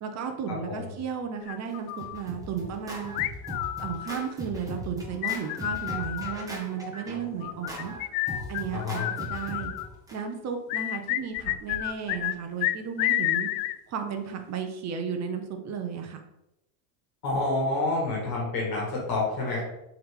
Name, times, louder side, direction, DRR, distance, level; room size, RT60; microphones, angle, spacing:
voice 1, 0.0-3.1 3.8-7.9 8.5-9.0 9.3-9.7 10.1-13.5 13.9-16.2, right 7 dB, 35° right, 5 dB, 1.0 m, -34 dB
sound 1, 1.5-2.2 3.2-4.3 5.2-6.5 7.4-9.9 10.7-12.4 12.6-13.8, left 15 dB, 75° left, 0.5 m, -30 dB
Scratching (performance technique), 1.7-10.2, equal, 5° right, 1.3 m, -39 dB
voice 2, 8.7-9.1 17.2-19.6, left 2 dB, 45° left, -3 dB, 2.4 m, -28 dB
7.6 x 3.7 x 3.8 m, 0.88 s
cardioid pair, 135°, 48 cm